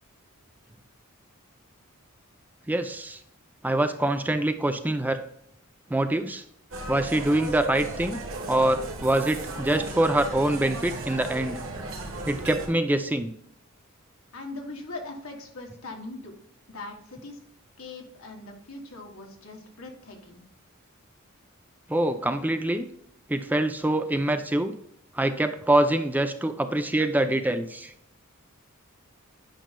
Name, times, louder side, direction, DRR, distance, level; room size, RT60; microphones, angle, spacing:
voice 1, 2.7-3.2 3.6-5.2 5.9-6.4 6.9-8.2 8.5-11.6 12.2-13.3 21.9-22.9 23.3-24.7 25.1-27.9, right 1 dB, 10° right, 8 dB, 0.4 m, -25 dB
sound 1, 6.7-12.7, right 2 dB, 70° right, 1.3 m, -35 dB
voice 2, 14.3-16.3 16.7-17.4 17.8-20.4, left 2 dB, 80° left, 2 dB, 1.6 m, -40 dB
9.0 x 5.5 x 2.2 m, 0.72 s
head